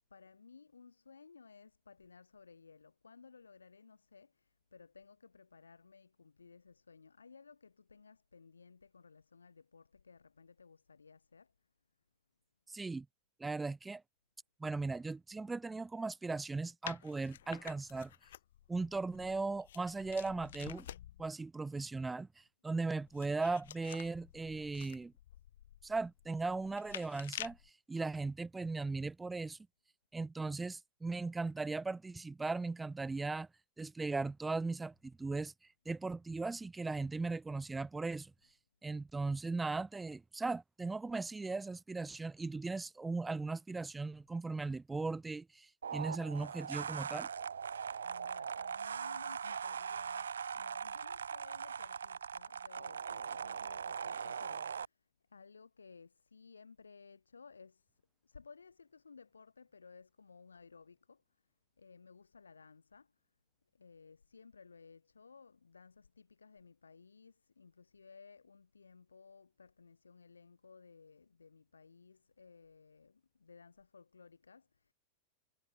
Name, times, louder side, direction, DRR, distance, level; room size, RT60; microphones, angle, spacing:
voice 1, 0.1-11.5 48.0-63.3 63.7-74.9, left 5 dB, 75° left, 6.5 m, -58 dB
voice 2, 12.7-13.1 13.4-14.0 14.6-18.1 18.7-20.9 21.2-25.1 25.8-27.6 27.9-29.6 30.1-33.5 33.8-35.5 35.9-38.3 38.8-47.3, right 3 dB, 10° right, 1.0 m, -38 dB
sound 1, 16.8-21.3 22.8-27.7, left 12 dB, 60° left, 3.4 m, -50 dB
sound 2, 45.8-54.8, right 7 dB, 70° right, 2.6 m, -41 dB
figure-of-eight pair, 90°, 0 cm